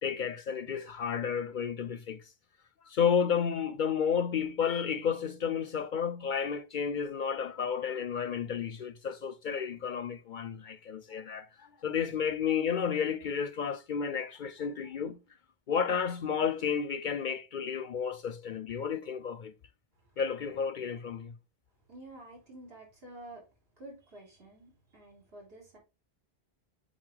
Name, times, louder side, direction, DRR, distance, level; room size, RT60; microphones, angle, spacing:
voice 1, 0.0-2.2 2.9-15.2 15.7-19.5 20.2-21.3, left 7 dB, 60° left, 0.6 m, -32 dB
voice 2, 21.9-23.5 23.8-25.8, right 1 dB, 70° right, 3.8 m, -50 dB
7.8 x 4.2 x 3.5 m
omnidirectional pair, 1.0 m